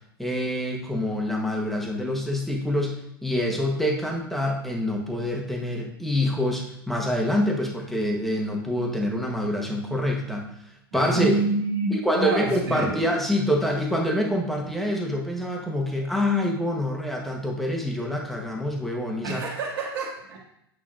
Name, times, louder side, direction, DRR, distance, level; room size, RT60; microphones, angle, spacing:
voice 1, 0.2-10.4 10.9-11.3 11.9-19.4, left 1 dB, ahead, 0 dB, 1.2 m, -26 dB
voice 2, 10.9-12.9 19.2-20.4, right 3 dB, 70° right, -7 dB, 1.7 m, -27 dB
8.7 x 5.6 x 2.5 m, 0.77 s
hypercardioid pair, 95°, 13 cm